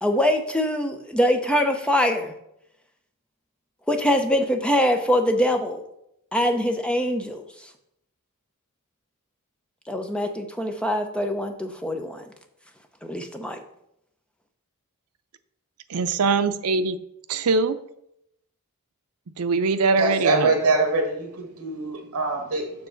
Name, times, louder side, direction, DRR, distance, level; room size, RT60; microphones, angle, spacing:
voice 1, 0.0-2.3 3.9-5.8 6.3-7.4 9.9-12.3 13.0-13.6, equal, 5° left, 0.5 m, -23 dB
voice 2, 15.9-17.0 17.3-17.8 19.4-20.5, right 4 dB, 80° right, 0.5 m, -22 dB
voice 3, 20.0-22.9, right 3 dB, 65° right, 1.4 m, -24 dB
7.0 x 6.2 x 3.9 m
head